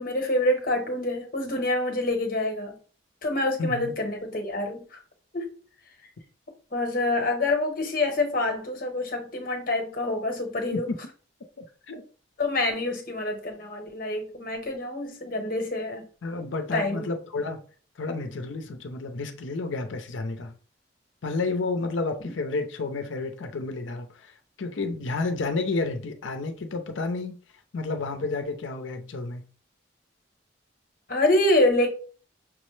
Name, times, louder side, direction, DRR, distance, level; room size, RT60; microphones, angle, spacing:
voice 1, 0.0-2.8 3.2-5.0 5.3-5.5 6.7-10.9 12.4-16.0 16.7-17.1 22.2-22.3 31.1-31.9, left 2 dB, 45° left, 1.0 m, -26 dB
voice 2, 3.6-3.9 10.7-10.8 11.6-12.0 16.2-17.6 18.0-20.5 21.2-27.4 27.7-29.5, left 3 dB, 75° left, 0.6 m, -31 dB
5.9 x 2.0 x 3.2 m
head